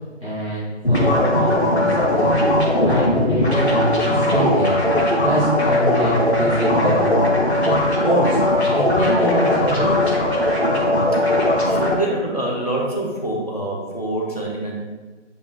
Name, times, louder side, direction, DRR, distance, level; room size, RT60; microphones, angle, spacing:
voice 1, 0.2-2.5 2.8-4.9 5.2-7.7 8.0-8.4 8.7-10.2, right 1 dB, 5° right, -25 dB, 1.9 m, -25 dB
sound 1, 0.8-11.9, left 1 dB, 60° left, 1.9 m, -18 dB
voice 2, 11.7-14.8, right 1 dB, 30° left, -3 dB, 1.1 m, -25 dB
8.9 x 5.2 x 2.3 m, 1.3 s
figure-of-eight pair, 175°, 37 cm